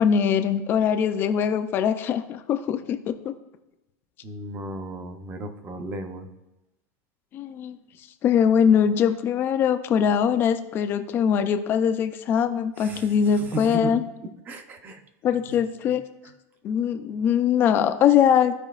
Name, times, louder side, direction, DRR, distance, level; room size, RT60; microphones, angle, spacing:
voice 1, 0.0-3.3 7.3-7.8 8.2-14.0 15.2-16.0 16.6-18.5, left 8 dB, 25° left, 9 dB, 0.4 m, -22 dB
voice 2, 4.2-6.3 12.8-14.0 14.5-15.0 15.5-15.6 15.9-16.0, right 2 dB, 20° right, 7 dB, 0.6 m, -35 dB
14.0 x 4.9 x 2.4 m, 0.99 s
supercardioid pair, 170°, 9 cm